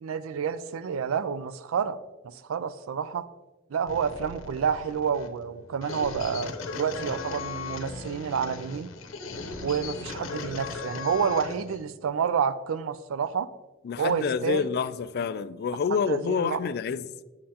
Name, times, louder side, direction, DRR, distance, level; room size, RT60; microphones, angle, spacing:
voice 1, 0.0-3.3 3.7-8.9 9.6-13.5 14.0-14.7 16.1-16.6, right 7 dB, 80° right, 0.4 m, -29 dB
sound 1, 3.9-11.8, left 4 dB, 75° left, 0.7 m, -38 dB
voice 2, 13.8-17.1, left 6 dB, 50° left, 0.3 m, -28 dB
7.6 x 6.4 x 2.8 m
head